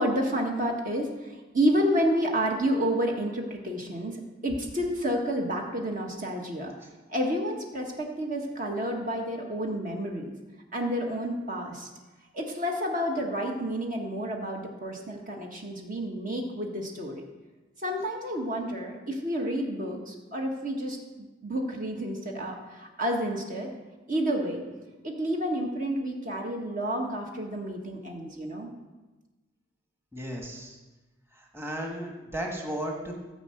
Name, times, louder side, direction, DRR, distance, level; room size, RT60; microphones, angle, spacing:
voice 1, 0.0-6.7 7.1-10.3 10.7-11.9 12.3-17.2 17.8-21.0 21.4-23.7 24.1-24.6 25.0-28.7, equal, 45° right, 1 dB, 1.5 m, -30 dB
voice 2, 30.1-30.8 31.3-33.1, right 1 dB, 15° right, 0 dB, 1.6 m, -35 dB
14.0 x 5.4 x 7.8 m, 1.2 s
head